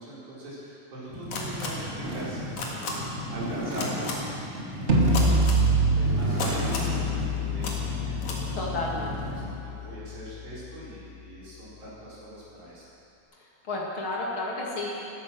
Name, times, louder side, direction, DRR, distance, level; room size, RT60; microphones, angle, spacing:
voice 1, 0.0-8.8 9.3-12.8, right 1 dB, 75° right, -9 dB, 6.2 m, -42 dB
sound 1, 1.1-9.6, equal, 25° right, 2.9 m, -35 dB
sound 2, 1.3-1.7 2.6-2.9 3.8-4.1 5.1-5.6 6.4-6.9 7.6-7.7 8.2-8.4, left 4 dB, 75° left, 3.2 m, -32 dB
sound 3, 4.9-10.9, right 1 dB, 55° right, 0.7 m, -26 dB
voice 2, 8.6-9.3 13.7-15.1, left 2 dB, 45° left, -4 dB, 2.8 m, -31 dB
15.5 x 13.0 x 6.2 m, 2.7 s
omnidirectional pair, 3.4 m